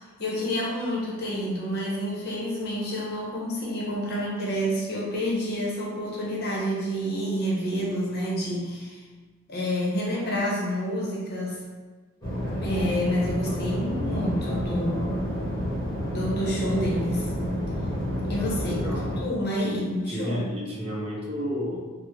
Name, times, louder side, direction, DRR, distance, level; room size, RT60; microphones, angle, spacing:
voice 1, 0.2-9.0 9.5-11.6 12.6-15.2 16.1-17.3 18.3-20.5, equal, 50° left, -4 dB, 0.8 m, -28 dB
sound 1, 12.2-19.2, equal, 20° left, 1.2 m, -29 dB
voice 2, 18.3-19.1 19.6-19.8 20.1-21.8, equal, 30° right, -5 dB, 0.6 m, -32 dB
3.5 x 2.0 x 3.0 m, 1.4 s
head